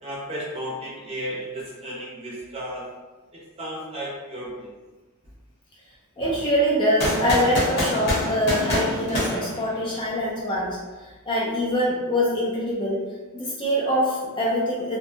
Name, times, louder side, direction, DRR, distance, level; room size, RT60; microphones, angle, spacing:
voice 1, 0.0-2.9 3.6-4.7 7.2-7.4, equal, 25° right, -6 dB, 0.6 m, -33 dB
voice 2, 6.2-10.8 11.3-13.0 13.3-15.0, equal, 20° left, -5 dB, 0.3 m, -24 dB
sound 1, 7.0-10.2, equal, 45° left, 0.8 m, -26 dB
2.5 x 2.1 x 2.6 m, 1.2 s
head